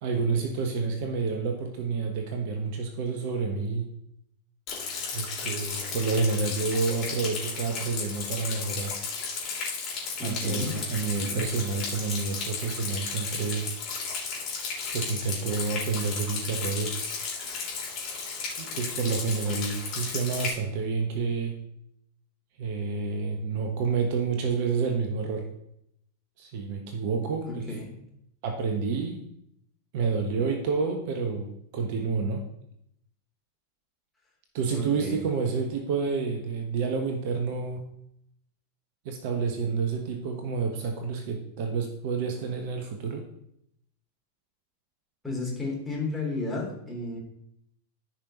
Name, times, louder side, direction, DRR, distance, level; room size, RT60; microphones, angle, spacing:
voice 1, 0.0-3.9 5.1-9.0 10.2-13.7 14.9-17.1 18.6-21.6 22.6-25.5 26.4-27.7 28.4-29.3 29.9-32.4 34.5-37.9 39.0-43.3, right 4 dB, 50° right, 4 dB, 1.1 m, -29 dB
Rain, 4.7-20.5, left 5 dB, 40° left, 3.3 m, -34 dB
voice 2, 10.2-10.8 11.3-11.4 27.4-28.0 34.7-35.4 45.2-47.2, left 2 dB, 5° left, -4 dB, 3.2 m, -33 dB
14.5 x 5.4 x 3.0 m, 0.76 s
figure-of-eight pair, 90°, 0 cm